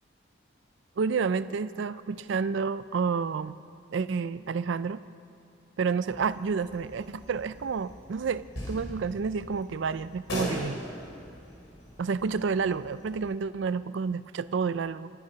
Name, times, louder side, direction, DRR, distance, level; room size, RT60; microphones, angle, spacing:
voice 1, 1.0-3.6 3.9-5.0 5.8-10.8 12.0-15.1, right 5 dB, 65° right, 14 dB, 0.4 m, -30 dB
sound 1, 6.1-13.3, equal, 70° left, 4.0 m, -41 dB
25.0 x 9.3 x 5.8 m, 2.7 s
head